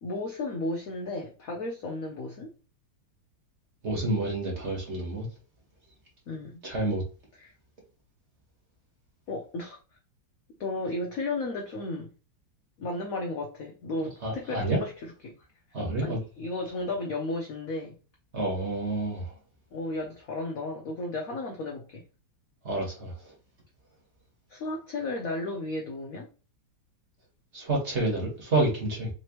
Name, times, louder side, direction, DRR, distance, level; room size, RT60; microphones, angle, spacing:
voice 1, 0.0-2.5 6.3-6.6 7.4-7.5 9.3-9.8 10.6-12.1 12.8-15.4 16.0-18.0 19.7-22.0 24.5-26.3, left 2 dB, 75° left, 0.8 m, -34 dB
voice 2, 3.8-5.3 6.6-7.0 14.2-14.8 15.7-16.2 18.3-19.3 22.6-23.2 27.5-29.1, right 2 dB, 35° right, 1.5 m, -28 dB
3.9 x 3.0 x 2.9 m
omnidirectional pair, 2.3 m